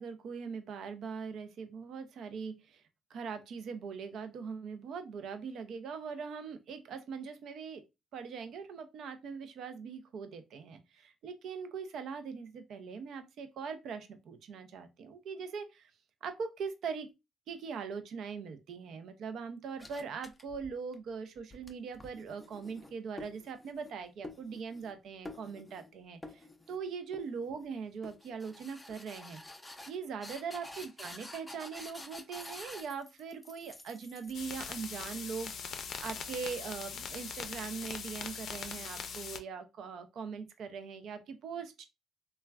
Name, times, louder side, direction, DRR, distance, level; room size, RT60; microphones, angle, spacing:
voice 1, 0.0-2.8 3.1-7.8 8.1-15.9 16.2-17.1 17.5-29.4 29.9-41.9, right 5 dB, 75° right, 0.5 m, -41 dB
sound 1, 19.8-20.9 21.4-23.9 24.2-25.0 25.3-25.9 26.2-26.8 27.1-27.7 28.0-36.6, left 2 dB, 15° left, 0.5 m, -50 dB
sound 2, 34.3-39.4, left 6 dB, 65° left, 0.4 m, -41 dB
3.2 x 2.2 x 2.3 m
cardioid pair, 90°, 0 cm